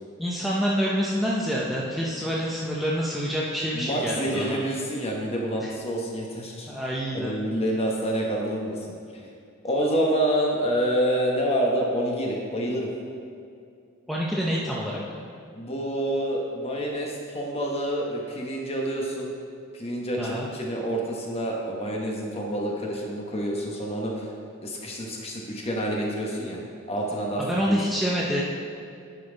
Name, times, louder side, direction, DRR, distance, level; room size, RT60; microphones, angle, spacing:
voice 1, 0.2-4.6 5.6-5.7 6.7-7.4 14.1-15.0 20.2-20.5 27.4-28.4, equal, ahead, -5 dB, 0.6 m, -27 dB
voice 2, 3.7-6.7 7.1-8.9 9.6-12.9 15.5-19.3 19.7-24.3 24.6-26.6 26.9-27.8, right 1 dB, 30° left, -1 dB, 1.2 m, -27 dB
10.5 x 5.5 x 4.0 m, 2.5 s
head